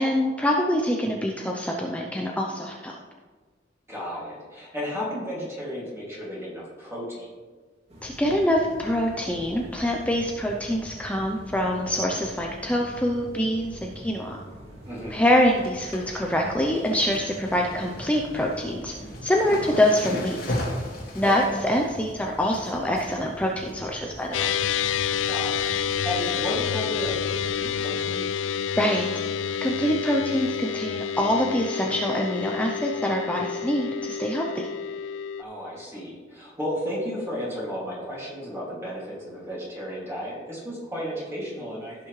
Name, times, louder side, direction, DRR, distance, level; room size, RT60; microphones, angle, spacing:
voice 1, 0.0-3.0 8.0-14.4 15.1-18.9 19.2-20.4 21.1-24.5 28.8-29.1 29.6-34.7, equal, 5° left, 0 dB, 0.6 m, -25 dB
voice 2, 3.9-7.3 14.9-15.2 21.2-21.5 25.2-28.3 35.4-42.1, equal, 15° right, -6 dB, 2.4 m, -33 dB
sound 1, 7.9-27.6, right 1 dB, 35° right, 2.2 m, -44 dB
sound 2, 14.7-15.0 15.3-24.5 24.8-25.3 25.6-26.4 26.7-26.8 27.8-28.1 28.3-28.4 28.8-28.9 30.5-30.6 31.3-31.4, left 1 dB, 55° left, 2.1 m, -38 dB
sound 3, 24.3-35.4, left 8 dB, 80° left, 0.3 m, -29 dB
15.5 x 6.0 x 3.2 m, 1.4 s
head